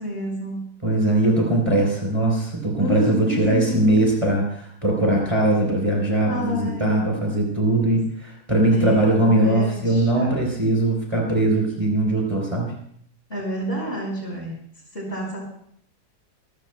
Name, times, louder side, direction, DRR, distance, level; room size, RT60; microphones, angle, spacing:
voice 1, 0.0-0.7 2.8-4.1 6.3-7.1 8.7-10.4 13.3-14.6 14.9-15.4, equal, 40° left, -3 dB, 5.5 m, -29 dB
voice 2, 0.8-12.7, right 1 dB, 20° right, -1 dB, 3.7 m, -21 dB
25.5 x 14.0 x 2.2 m, 0.65 s
omnidirectional pair, 1.7 m